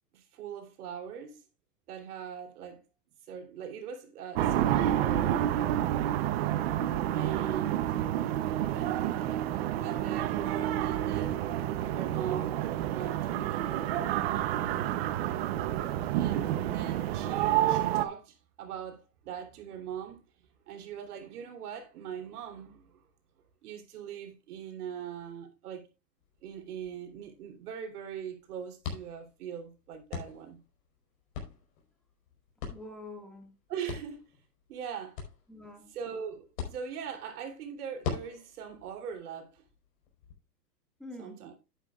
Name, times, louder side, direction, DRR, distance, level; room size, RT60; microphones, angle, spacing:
voice 1, 0.1-1.4 1.9-2.8 3.2-5.8 7.1-7.9 8.6-9.3 9.8-11.4 11.8-14.0 16.1-23.0 23.6-25.9 26.4-30.6 33.7-34.2 34.7-35.2 35.9-39.6 41.2-41.5, right 8 dB, 65° right, 3.2 m, -41 dB
sound 1, 4.4-18.0, right 12 dB, 40° right, 0.8 m, -29 dB
voice 2, 6.8-7.1 32.7-33.5 35.5-36.0 41.0-41.5, left 1 dB, ahead, 1.8 m, -46 dB
sound 2, 26.2-40.3, left 6 dB, 55° left, 4.6 m, -44 dB
11.0 x 9.2 x 2.4 m
supercardioid pair, 155°, 48 cm